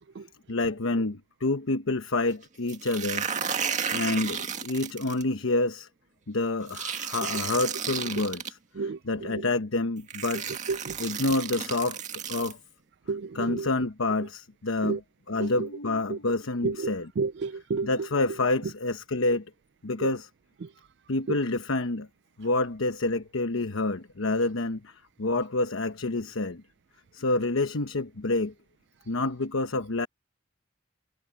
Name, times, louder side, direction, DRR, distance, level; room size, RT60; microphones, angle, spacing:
voice 1, 0.5-3.3 3.9-5.9 6.3-8.6 9.1-10.5 11.0-12.6 13.3-15.0 15.3-17.1 17.8-19.4 19.8-20.3 21.1-22.1 22.4-26.6 27.1-28.5 29.1-30.1, left 2 dB, 90° left, 1.1 m, -28 dB
sound 1, 2.7-5.2 6.7-8.5 9.5-9.6 10.1-12.5, right 7 dB, 35° right, 2.0 m, -33 dB
voice 2, 8.8-9.5 10.7-11.0 13.1-13.7 14.8-15.0 15.4-15.7 16.1-16.2 16.6-18.1 20.0-20.1 20.6-20.7 21.3-21.4, right 4 dB, 55° right, 0.4 m, -32 dB
head